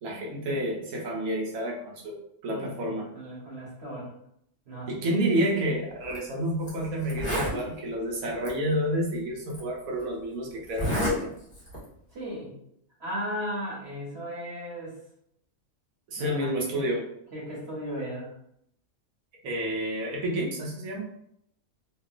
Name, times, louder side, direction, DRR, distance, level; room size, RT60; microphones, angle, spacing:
voice 1, 0.0-2.2 2.4-3.1 4.9-11.3 16.1-17.0 19.4-21.1, equal, 80° right, -1 dB, 1.2 m, -29 dB
voice 2, 2.5-4.1 4.7-5.1 12.1-12.5 13.0-15.0 16.2-16.9 17.3-18.3, equal, 55° right, -6 dB, 1.1 m, -36 dB
Zipper (clothing), 6.0-6.2 6.7-6.8 7.0-7.6 8.4-8.5 9.5-9.6 10.7-11.2 11.5-11.8, equal, 30° left, 1.0 m, -29 dB
2.8 x 2.3 x 2.3 m, 0.73 s
omnidirectional pair, 1.5 m